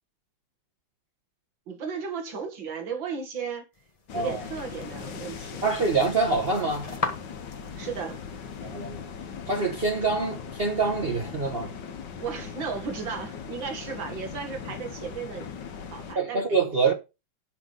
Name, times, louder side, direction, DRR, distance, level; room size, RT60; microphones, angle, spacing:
voice 1, 1.7-3.7 4.1-5.7 7.8-8.2 12.2-15.5 15.9-16.6, right 6 dB, 80° right, 2.6 m, -35 dB
sound 1, 3.7-8.9, left 3 dB, 20° left, 1.2 m, -39 dB
sound 2, 4.1-16.2, left 6 dB, 70° left, 1.7 m, -39 dB
voice 2, 4.1-4.4 5.6-6.9 8.6-9.0 9.5-11.7 16.1-16.9, right 4 dB, 35° right, 1.4 m, -25 dB
8.5 x 6.1 x 5.3 m
omnidirectional pair, 2.1 m